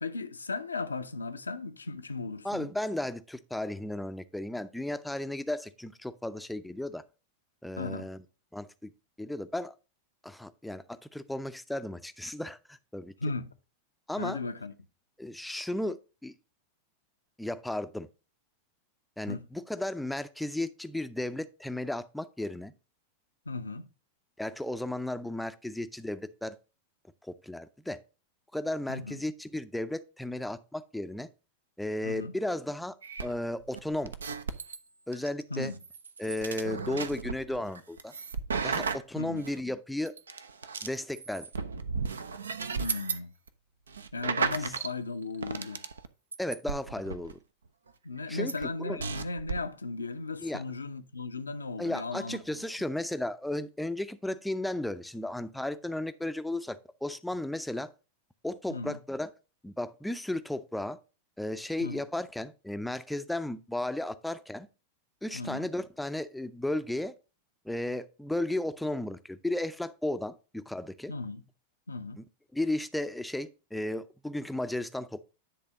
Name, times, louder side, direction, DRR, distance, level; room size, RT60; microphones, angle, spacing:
voice 1, 0.0-2.7 7.8-8.1 13.2-13.5 14.2-14.7 19.3-19.4 23.5-23.9 28.9-29.2 32.0-32.3 35.5-35.8 39.2-39.4 42.8-43.3 44.1-45.8 48.0-52.7 58.7-59.0 61.8-62.0 65.3-65.7 71.1-71.4 71.9-72.2, left 3 dB, 75° left, 0.6 m, -36 dB
voice 2, 2.4-7.0 7.6-8.2 8.5-8.9 9.2-9.7 10.2-13.1 14.1-14.4 15.2-16.3 17.4-18.1 19.2-22.7 24.4-26.6 27.3-28.0 28.5-31.3 31.8-34.1 35.1-35.7 36.2-38.1 38.6-40.1 40.8-41.5 46.4-47.4 48.3-48.5 48.8-49.0 50.4-50.6 51.8-57.9 58.4-59.3 59.6-61.0 61.4-64.7 65.2-67.1 67.7-71.1 72.5-75.2, left 1 dB, 5° left, 0.5 m, -34 dB
sound 1, 33.0-34.8 35.1-39.5 40.1-43.2 43.5-43.6 43.9-44.9 45.2-46.1 46.3-47.3 48.5-48.6 49.0-49.6, right 5 dB, 70° right, 0.5 m, -35 dB
10.0 x 3.4 x 4.9 m
figure-of-eight pair, 90°, 0 cm